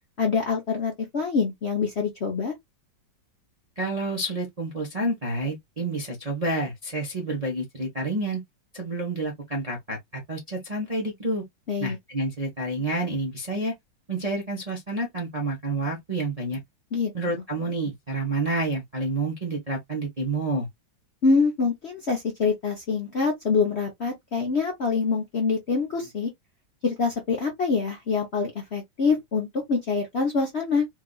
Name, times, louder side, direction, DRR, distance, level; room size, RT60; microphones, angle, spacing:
voice 1, 0.2-2.5 11.7-12.0 16.9-17.3 21.2-26.3 26.8-30.9, left 4 dB, 50° left, 0.8 m, -25 dB
voice 2, 3.8-8.4 8.7-11.4 11.8-13.7 14.1-16.6 17.1-20.7, right 2 dB, 30° right, 0.7 m, -29 dB
4.6 x 2.5 x 2.3 m
omnidirectional pair, 2.1 m